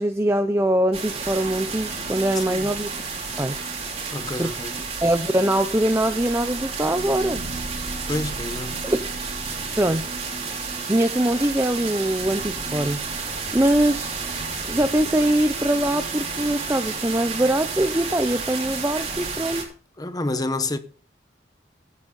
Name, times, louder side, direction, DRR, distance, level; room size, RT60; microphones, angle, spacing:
voice 1, 0.0-3.0 3.4-3.6 4.4-4.5 5.0-7.4 8.8-9.0 9.8-10.1 10.9-13.0 13.5-14.1 14.7-19.6, right 1 dB, 15° right, 0.6 m, -22 dB
sound 1, 0.9-19.6, right 4 dB, 35° right, 3.2 m, -31 dB
voice 2, 4.1-4.7 8.1-8.8 20.0-20.8, left 2 dB, 20° left, 1.0 m, -28 dB
15.5 x 8.4 x 3.8 m
head